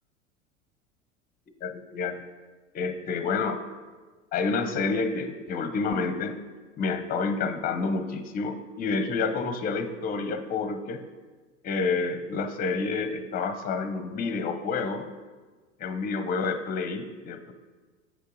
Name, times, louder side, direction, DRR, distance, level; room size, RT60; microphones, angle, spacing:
voice 1, 1.6-2.2 2.7-3.6 4.3-6.4 6.8-11.0 11.6-15.0 15.8-17.5, left 4 dB, 25° left, 9 dB, 0.6 m, -29 dB
7.7 x 5.3 x 3.8 m, 1.3 s
figure-of-eight pair, 80°, 39 cm